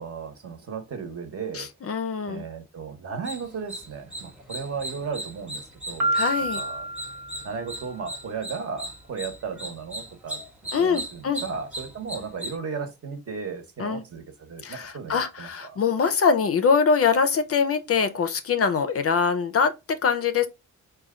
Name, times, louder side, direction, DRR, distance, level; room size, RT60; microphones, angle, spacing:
voice 1, 0.0-1.7 2.3-6.2 6.6-6.9 7.4-10.4 10.8-15.8, right 5 dB, 45° right, 0.9 m, -35 dB
voice 2, 1.5-2.4 6.1-6.6 10.7-11.4 13.8-14.0 14.6-20.5, left 6 dB, 45° left, 0.5 m, -23 dB
sound 1, 3.2-12.6, right 1 dB, 5° right, 0.8 m, -38 dB
Piano, 6.0-7.9, right 1 dB, 75° right, 1.1 m, -28 dB
4.2 x 2.2 x 3.6 m
wide cardioid pair, 130°, 33 cm